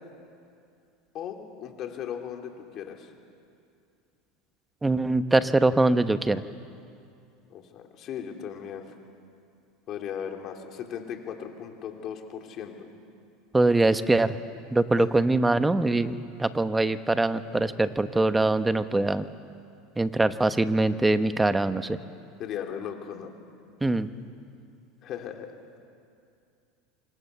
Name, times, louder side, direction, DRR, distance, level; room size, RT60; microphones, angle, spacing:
voice 1, 1.1-3.1 7.5-8.9 9.9-12.7 15.0-15.1 22.4-23.3 25.0-25.5, left 8 dB, 45° left, 3 dB, 3.3 m, -37 dB
voice 2, 4.8-6.4 13.5-14.3 14.7-19.2 20.0-22.0 23.8-24.1, right 2 dB, 10° right, 11 dB, 1.0 m, -23 dB
26.0 x 25.5 x 7.0 m, 2.5 s
supercardioid pair, 115°, 0 cm